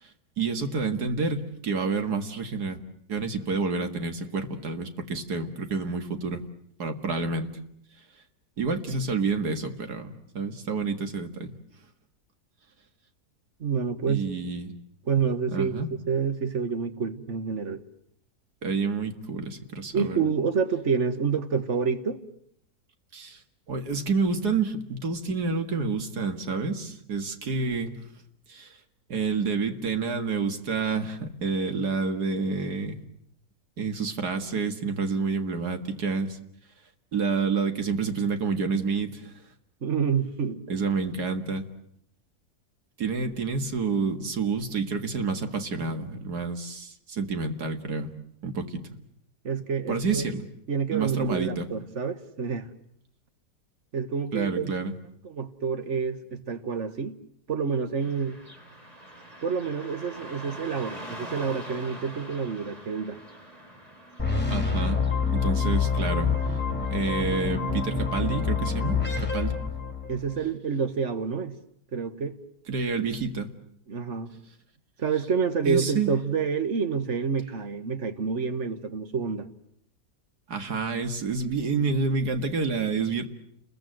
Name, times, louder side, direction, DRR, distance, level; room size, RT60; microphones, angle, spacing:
voice 1, 0.0-2.8 3.1-6.4 6.8-7.5 8.6-11.5 14.1-14.7 15.5-15.9 18.6-20.2 23.1-23.4 23.7-28.0 28.5-28.8 29.1-33.0 33.8-36.4 37.1-39.4 40.7-41.7 43.0-48.1 48.4-48.8 49.9-50.4 50.9-51.7 54.3-54.9 64.5-65.1 65.3-66.6 66.9-69.6 72.7-73.5 75.6-76.1 80.5-83.3, right 4 dB, 85° right, 2.4 m, -29 dB
voice 2, 13.6-14.2 15.1-17.8 19.9-22.2 39.8-40.6 49.4-50.3 50.7-52.7 53.9-54.8 55.2-57.2 57.5-58.4 59.4-63.2 70.1-71.6 71.9-72.4 73.9-74.3 75.0-79.5, right 6 dB, 50° right, 1.6 m, -28 dB
Car passing by / Traffic noise roadway noise, 58.0-67.0, right 1 dB, 25° right, 3.4 m, -44 dB
sound 1, 64.2-70.3, left 5 dB, 5° left, 3.4 m, -27 dB
30.0 x 21.5 x 7.8 m
omnidirectional pair, 1.7 m